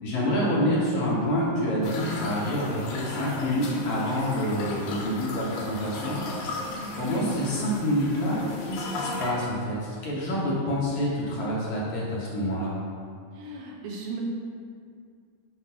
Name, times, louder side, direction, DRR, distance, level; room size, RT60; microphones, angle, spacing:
voice 1, 0.0-6.2 7.0-9.8 10.0-12.7, equal, 65° left, -6 dB, 2.1 m, -27 dB
sound 1, 1.8-9.3, left 2 dB, 85° left, 1.4 m, -36 dB
voice 2, 13.3-14.2, right 4 dB, 80° right, -2 dB, 2.3 m, -36 dB
7.5 x 2.5 x 5.6 m, 2.2 s
omnidirectional pair, 3.9 m